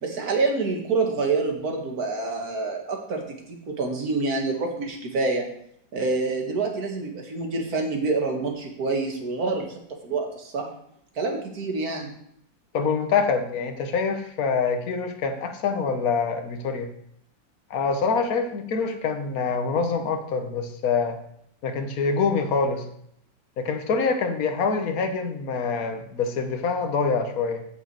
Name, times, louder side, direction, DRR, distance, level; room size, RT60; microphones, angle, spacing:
voice 1, 0.0-3.2 3.5-5.5 5.9-9.7 10.0-10.7 11.2-12.1, right 3 dB, 50° right, 2 dB, 2.2 m, -27 dB
voice 2, 12.7-16.9 17.7-21.2 21.6-22.9 23.6-27.6, left 5 dB, 55° left, 6 dB, 1.5 m, -25 dB
9.6 x 5.1 x 7.7 m, 0.71 s
omnidirectional pair, 2.1 m